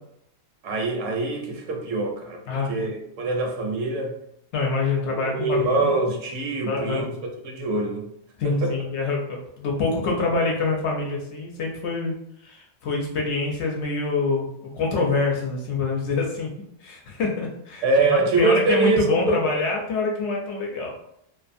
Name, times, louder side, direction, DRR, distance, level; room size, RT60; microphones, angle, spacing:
voice 1, 0.6-2.4 2.7-4.1 5.1-7.1 7.4-8.1 8.6-8.7 17.8-19.4, right 3 dB, 75° right, 1 dB, 0.9 m, -24 dB
voice 2, 2.5-2.9 4.5-5.9 6.7-7.0 8.4-16.5 16.8-20.9, left 3 dB, 65° left, 0 dB, 0.8 m, -26 dB
2.5 x 2.4 x 2.5 m, 0.75 s
omnidirectional pair, 1.4 m